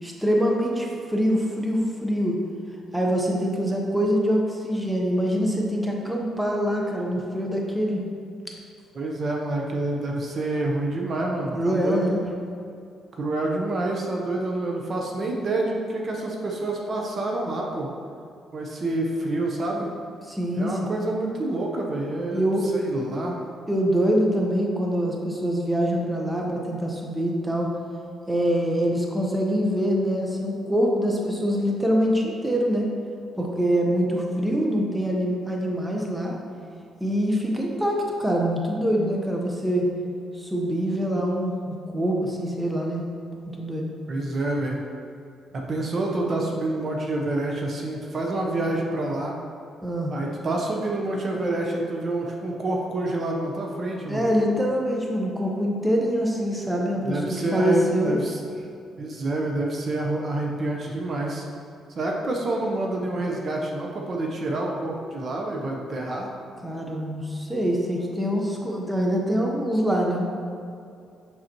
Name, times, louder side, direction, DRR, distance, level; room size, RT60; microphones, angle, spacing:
voice 1, 0.0-2.4 2.9-8.0 11.5-12.2 20.3-20.8 22.3-22.7 23.7-27.7 28.3-32.9 33.4-36.3 37.0-39.9 40.3-43.0 43.6-43.9 49.8-50.1 54.1-58.2 66.6-70.3, equal, 10° right, -1 dB, 0.9 m, -24 dB
voice 2, 8.9-12.1 13.2-17.9 18.5-19.9 20.5-22.5 22.7-23.4 44.1-44.8 45.5-49.3 50.1-54.3 57.0-58.4 59.0-61.5 62.0-66.3, right 2 dB, 50° right, 0 dB, 0.8 m, -27 dB
6.5 x 5.9 x 3.0 m, 2.4 s
cardioid pair, 90°, 0 cm